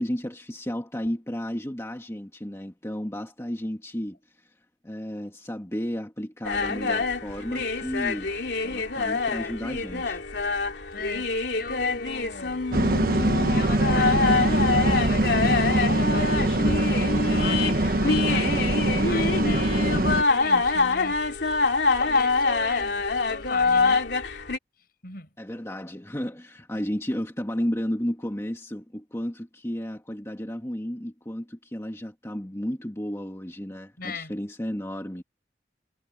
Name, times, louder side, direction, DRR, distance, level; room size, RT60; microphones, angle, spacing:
voice 1, 0.0-4.5 4.8-8.3 8.6-10.2 25.4-35.2, equal, 15° left, 1.8 m, -33 dB
sound 1, 6.4-24.6, left 4 dB, 80° left, 2.5 m, -25 dB
voice 2, 10.9-12.7 13.5-21.2 21.8-24.1 25.0-25.3 34.0-34.3, left 3 dB, 55° left, 7.5 m, -39 dB
sound 2, 12.7-20.2, right 1 dB, 55° right, 1.2 m, -23 dB
head